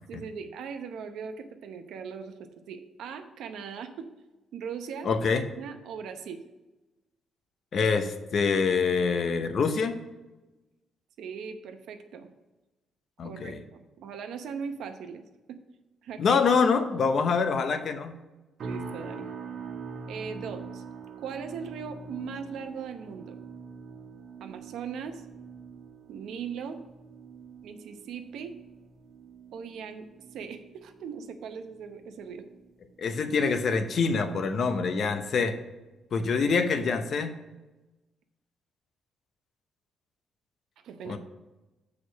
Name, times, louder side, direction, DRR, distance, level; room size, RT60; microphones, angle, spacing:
voice 1, 0.1-4.1 4.5-5.1 5.6-6.4 11.2-12.3 13.2-15.2 15.5-15.6 16.0-16.4 18.6-19.3 20.1-20.8 21.2-23.4 24.4-25.2 26.1-26.8 27.6-28.6 29.5-30.1 30.3-32.4 40.8-41.2, right 6 dB, 80° right, 7 dB, 0.8 m, -39 dB
voice 2, 5.0-5.4 7.7-10.0 13.2-13.6 16.2-18.2 33.0-35.5 36.1-37.4 41.0-41.2, left 5 dB, 55° left, 8 dB, 0.8 m, -25 dB
sound 1, 18.6-33.8 34.1-34.5 35.0-35.2, right 5 dB, 60° right, 1.3 m, -44 dB
6.4 x 4.9 x 6.0 m, 1.1 s
cardioid pair, 90°, 0 cm